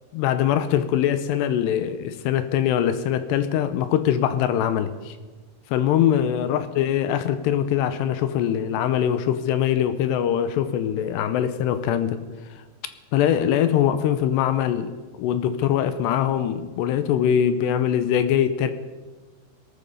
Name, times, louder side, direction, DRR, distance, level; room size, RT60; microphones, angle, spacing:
voice 1, 0.1-5.2 5.7-12.2 13.1-18.7, left 10 dB, 80° left, 11 dB, 2.6 m, -22 dB
19.5 x 13.5 x 5.5 m, 1.3 s
omnidirectional pair, 5.5 m